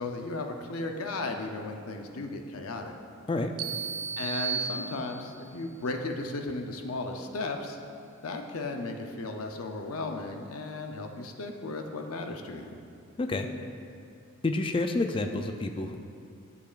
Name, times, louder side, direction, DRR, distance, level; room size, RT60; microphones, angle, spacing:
voice 1, 0.0-2.9 4.2-7.8 8.2-12.7, left 2 dB, 75° left, 4 dB, 0.6 m, -35 dB
sound 1, 3.6-5.5, right 6 dB, 70° right, 0.4 m, -34 dB
voice 2, 13.2-13.5 14.4-16.0, left 2 dB, 25° left, 6 dB, 0.3 m, -29 dB
10.5 x 6.8 x 2.5 m, 2.4 s
head